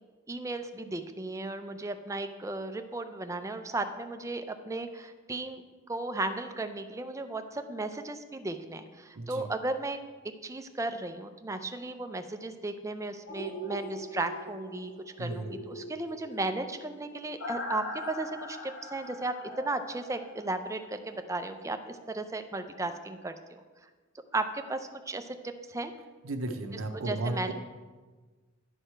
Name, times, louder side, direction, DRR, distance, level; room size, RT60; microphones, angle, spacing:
voice 1, 0.3-5.6 5.9-10.0 10.4-14.9 15.2-23.6 24.3-25.9 27.1-27.5, right 2 dB, 15° right, 8 dB, 0.4 m, -35 dB
voice 2, 9.2-9.5 15.2-15.6 26.2-27.5, right 2 dB, 90° right, 5 dB, 0.7 m, -34 dB
sound 1, 13.3-21.2 21.5-21.6, equal, 65° left, 1.0 m, -42 dB
11.0 x 4.8 x 4.4 m, 1.4 s
head